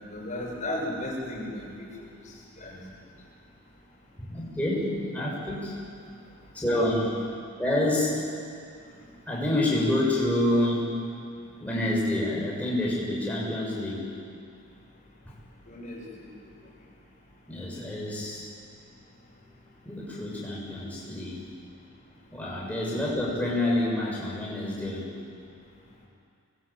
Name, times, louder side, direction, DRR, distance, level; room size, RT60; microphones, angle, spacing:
voice 1, 0.1-1.9 2.6-2.8 15.7-16.0, left 1 dB, 35° left, -3 dB, 6.9 m, -34 dB
voice 2, 4.3-5.7 6.5-7.2 7.6-8.2 9.3-10.9 11.6-14.1 17.5-18.4 19.8-21.4 22.3-25.1, left 1 dB, 5° left, -5 dB, 7.3 m, -27 dB
26.0 x 21.5 x 9.2 m, 2.3 s
head